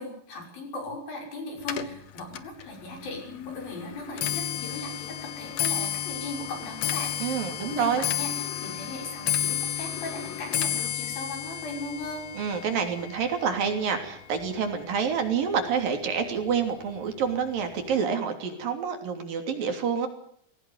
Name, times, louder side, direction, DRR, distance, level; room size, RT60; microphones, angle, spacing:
voice 1, 0.0-12.3, left 2 dB, 80° left, 2 dB, 7.9 m, -38 dB
Clock, 1.6-15.0 15.3-15.8 16.6-16.7 17.0-17.4 17.6-17.7, left 10 dB, 60° left, 2.1 m, -32 dB
voice 2, 7.2-8.1 12.4-20.1, right 6 dB, 75° right, 5 dB, 4.8 m, -28 dB
21.5 x 17.5 x 9.5 m, 0.65 s
omnidirectional pair, 4.1 m